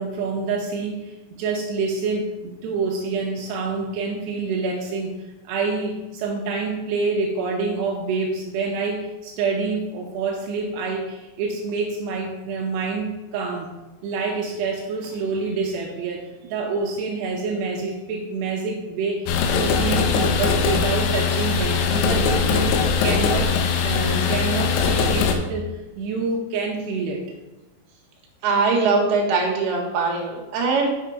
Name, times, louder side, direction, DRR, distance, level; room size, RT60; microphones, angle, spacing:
voice 1, 0.0-5.1 5.4-13.7 14.0-23.6 23.8-25.7 26.0-27.2, right 4 dB, 80° right, 0 dB, 2.5 m, -27 dB
sound 1, 19.3-25.4, left 6 dB, 80° left, 2.8 m, -21 dB
voice 2, 28.4-30.9, right 4 dB, 60° right, -1 dB, 2.9 m, -21 dB
7.1 x 6.4 x 4.9 m, 1.1 s
omnidirectional pair, 6.0 m